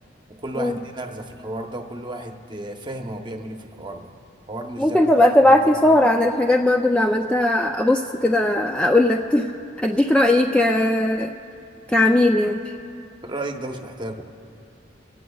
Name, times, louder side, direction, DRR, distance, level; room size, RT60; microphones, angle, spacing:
voice 1, 0.4-4.1 4.5-5.1 5.5-5.7 13.2-14.3, right 1 dB, 25° right, 4 dB, 0.9 m, -33 dB
voice 2, 4.8-9.5 9.8-11.3 11.9-12.6, left 1 dB, 5° left, 2 dB, 0.4 m, -18 dB
23.0 x 16.0 x 2.3 m, 2.5 s
head